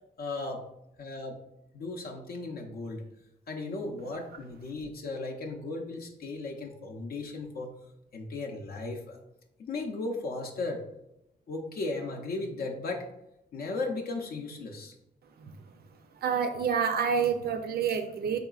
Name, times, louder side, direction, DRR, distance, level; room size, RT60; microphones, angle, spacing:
voice 1, 0.2-0.6 1.0-1.4 1.7-3.0 3.5-7.7 8.1-9.2 9.6-10.8 11.5-13.1 13.5-14.9, left 3 dB, 65° left, 1 dB, 0.5 m, -36 dB
voice 2, 16.1-18.4, right 7 dB, 70° right, 7 dB, 0.4 m, -28 dB
3.8 x 3.7 x 2.3 m, 0.88 s
wide cardioid pair, 130°, 17 cm